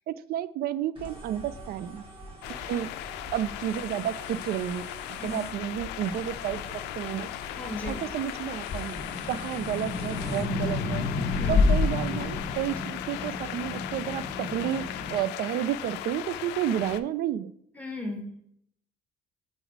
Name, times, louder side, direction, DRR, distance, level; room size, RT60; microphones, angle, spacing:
voice 1, 0.1-2.0 2.7-2.9 3.3-7.3 7.9-9.0 9.3-11.1 11.5-17.5, right 11 dB, 65° right, 16 dB, 0.4 m, -31 dB
sound 1, 1.0-10.6, equal, 30° right, 1.6 m, -45 dB
sound 2, 2.4-17.0, left 13 dB, 90° left, 0.4 m, -38 dB
sound 3, 5.6-8.1 8.5-15.2, left 3 dB, 55° left, 1.5 m, -29 dB
voice 2, 7.5-8.0 11.4-11.7 17.7-18.4, left 1 dB, 10° left, 0 dB, 1.6 m, -35 dB
5.1 x 4.1 x 4.5 m, 0.70 s
cardioid pair, 110°, 17 cm